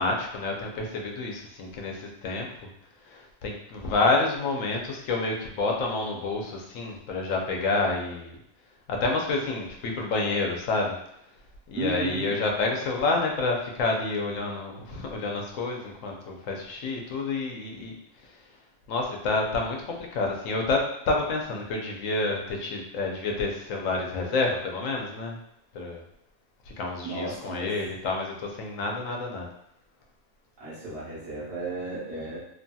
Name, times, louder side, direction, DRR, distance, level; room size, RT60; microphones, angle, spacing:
voice 1, 0.0-2.5 3.1-8.4 8.9-11.0 11.7-17.9 18.9-25.4 25.7-26.0 26.8-29.5, left 3 dB, 85° left, 1 dB, 1.0 m, -28 dB
voice 2, 11.7-12.3 27.0-27.7 30.6-32.4, right 3 dB, 55° right, -7 dB, 1.3 m, -34 dB
3.0 x 2.6 x 2.2 m, 0.77 s
omnidirectional pair, 1.3 m